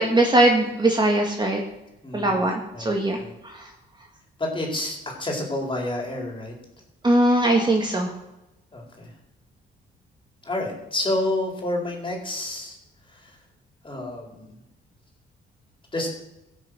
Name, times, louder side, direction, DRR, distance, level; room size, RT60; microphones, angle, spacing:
voice 1, 0.0-1.6 2.1-3.2 3.4-3.7 7.0-8.1, right 1 dB, 20° right, 1 dB, 2.2 m, -20 dB
voice 2, 2.0-2.5 2.7-3.3 4.4-6.6 8.7-9.1 10.4-12.8 13.1-13.4 13.8-14.5 15.9-16.1, left 1 dB, 25° left, 0 dB, 4.4 m, -29 dB
16.0 x 6.6 x 6.5 m, 0.92 s
cardioid pair, 90°, 20 cm